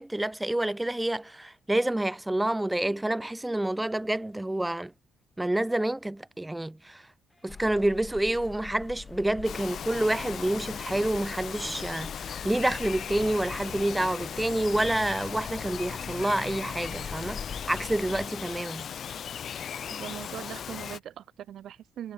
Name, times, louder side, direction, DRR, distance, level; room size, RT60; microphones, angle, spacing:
voice 1, 0.0-4.9 5.4-7.0 7.4-18.9, right 1 dB, 10° right, 0.5 m, -28 dB
sound 1, 7.3-18.3, left 1 dB, 10° left, 7.5 m, -63 dB
sound 2, 7.5-18.3, left 6 dB, 40° left, 1.7 m, -43 dB
Bird vocalization bird call bird song, 9.4-21.0, left 8 dB, 60° left, 0.4 m, -38 dB
voice 2, 19.9-22.1, right 10 dB, 70° right, 3.4 m, -41 dB
cardioid pair, 90°, 0 cm